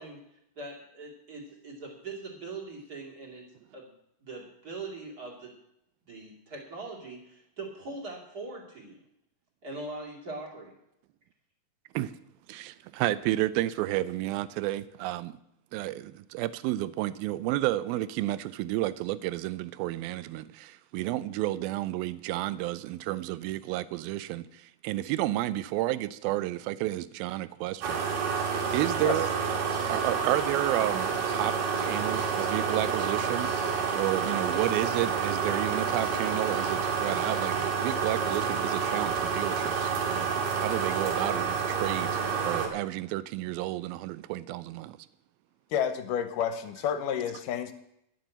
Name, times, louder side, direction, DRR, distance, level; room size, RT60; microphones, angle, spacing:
voice 1, 0.0-3.5 3.7-3.9 4.2-5.5 6.0-9.0 9.6-10.7, right 3 dB, 30° right, 2.7 m, -41 dB
voice 2, 12.5-15.3 15.7-28.0 28.7-29.3 29.9-33.5 33.9-40.3 40.6-45.0, right 15 dB, 85° right, 2.4 m, -31 dB
sound 1, 27.8-42.7, right 6 dB, 65° right, 3.2 m, -29 dB
voice 3, 45.7-47.7, left 8 dB, 75° left, 2.2 m, -30 dB
11.5 x 7.4 x 8.0 m
omnidirectional pair, 4.3 m